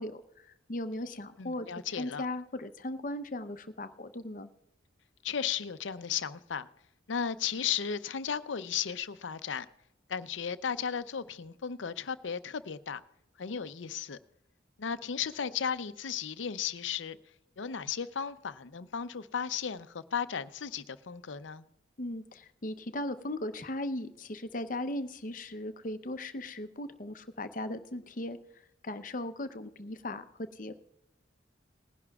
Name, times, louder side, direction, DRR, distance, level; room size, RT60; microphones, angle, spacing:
voice 1, 0.0-1.7 2.0-4.5 22.0-28.4 28.8-30.3 30.5-30.8, left 1 dB, 45° left, 0.7 m, -37 dB
voice 2, 1.4-2.3 5.2-6.7 7.1-9.7 10.1-13.0 13.4-14.2 14.8-17.2 17.6-21.6, left 7 dB, 90° left, 0.6 m, -35 dB
20.0 x 11.0 x 2.4 m
head